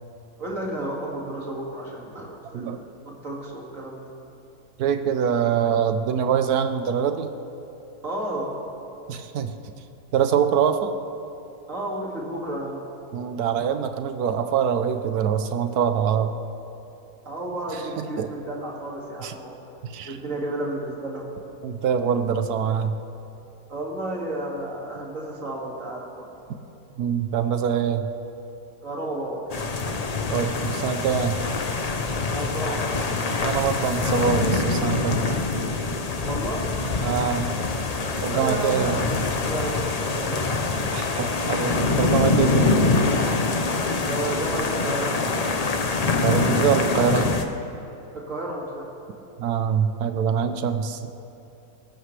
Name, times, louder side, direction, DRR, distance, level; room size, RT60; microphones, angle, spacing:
voice 1, 0.4-4.0 8.0-8.6 11.7-12.9 17.2-19.6 20.0-21.3 23.7-26.4 28.8-29.5 32.3-32.9 36.2-36.7 38.3-40.7 44.0-45.2 48.1-48.9, right 1 dB, 55° right, -3 dB, 2.6 m, -32 dB
voice 2, 4.8-7.3 9.1-9.5 10.1-10.9 13.1-16.3 18.0-18.3 19.2-19.3 19.9-20.1 21.6-22.9 27.0-28.1 30.3-31.4 33.4-35.2 37.0-37.5 38.2-39.0 40.9-42.7 46.2-47.3 49.4-51.1, right 7 dB, 75° right, 8 dB, 1.2 m, -24 dB
sound 1, 29.5-47.4, left 3 dB, 40° left, 0.6 m, -24 dB
23.5 x 13.5 x 3.3 m, 3.0 s
omnidirectional pair, 1.6 m